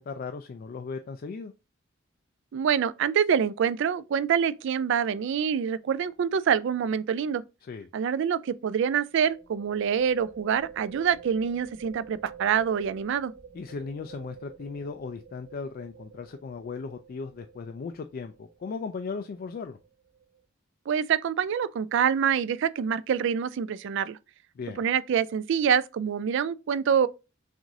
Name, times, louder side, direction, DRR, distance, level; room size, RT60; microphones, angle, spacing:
voice 1, 0.0-1.5 7.6-7.9 13.5-19.8 24.6-24.8, left 4 dB, 45° left, 0.3 m, -37 dB
voice 2, 2.5-7.4 7.9-13.3 20.9-24.2 24.8-27.1, right 7 dB, 65° right, 0.3 m, -26 dB
sound 1, 6.0-6.2 6.5-6.6 9.1-20.4, right 7 dB, 80° right, 1.3 m, -49 dB
6.0 x 2.5 x 2.7 m
head